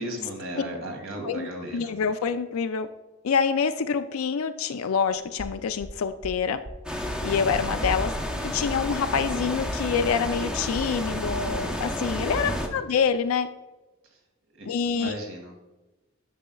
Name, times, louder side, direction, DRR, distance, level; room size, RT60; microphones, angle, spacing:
voice 1, 0.0-2.0 12.4-12.9 14.6-15.5, right 1 dB, 65° right, 2 dB, 2.0 m, -36 dB
voice 2, 1.2-2.9 3.2-6.6 7.2-8.1 8.4-13.5 14.7-15.1, left 6 dB, 75° left, 8 dB, 0.4 m, -26 dB
sound 1, 5.1-10.3, equal, 50° right, 0.8 m, -40 dB
sound 2, 6.9-12.7, equal, 5° right, 0.7 m, -30 dB
10.5 x 6.4 x 2.3 m, 1.1 s
head